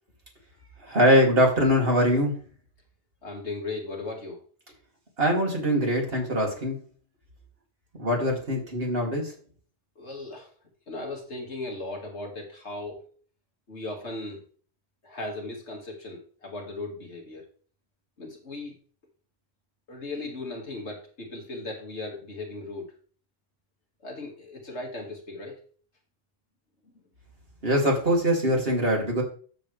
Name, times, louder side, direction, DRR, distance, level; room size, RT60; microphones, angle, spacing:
voice 1, 0.8-2.3 5.2-6.8 8.0-9.3 27.6-29.2, equal, 50° right, -1 dB, 3.1 m, -22 dB
voice 2, 3.2-4.4 10.0-10.5 10.9-13.1 13.7-14.4 15.0-17.5 18.2-18.8 19.9-22.9 24.0-25.6, left 2 dB, 60° left, 0 dB, 2.4 m, -37 dB
13.0 x 7.0 x 3.4 m, 0.43 s
omnidirectional pair, 1.3 m